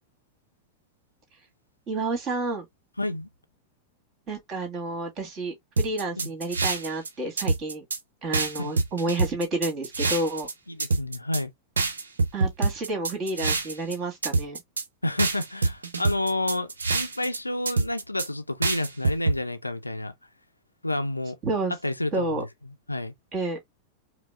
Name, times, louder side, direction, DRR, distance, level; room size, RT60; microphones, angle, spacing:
voice 1, 1.9-2.6 4.3-7.8 8.2-10.5 12.3-14.6 21.4-21.7 22.1-22.4 23.3-23.6, right 2 dB, 30° right, 2.0 m, -30 dB
voice 2, 3.0-3.3 6.2-6.3 8.6-8.8 10.7-11.5 15.0-20.1 20.8-21.4 21.8-23.1, left 2 dB, 85° left, 0.5 m, -30 dB
sound 1, 5.8-7.1 7.4-8.0 8.3-10.5 10.8-11.4 11.8-13.9 14.2-14.8 15.2-17.4 17.7-18.3 18.6-19.4, right 3 dB, 70° right, 0.7 m, -26 dB
4.9 x 2.0 x 3.5 m
figure-of-eight pair, 90°, 0 cm